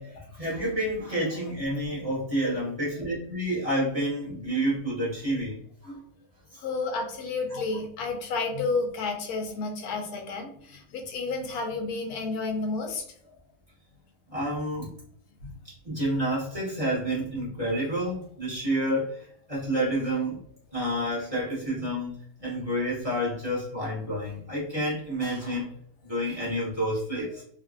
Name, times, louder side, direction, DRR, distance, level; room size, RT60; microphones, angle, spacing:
voice 1, 0.0-6.0 7.5-7.6 14.3-14.9 15.8-19.1 19.5-20.4 20.7-22.1 22.4-25.7 26.1-27.4, right 1 dB, 25° right, -9 dB, 0.9 m, -29 dB
voice 2, 6.6-13.0 15.4-15.5, left 3 dB, 85° left, 3 dB, 1.1 m, -31 dB
2.8 x 2.4 x 2.4 m, 0.65 s
omnidirectional pair, 1.6 m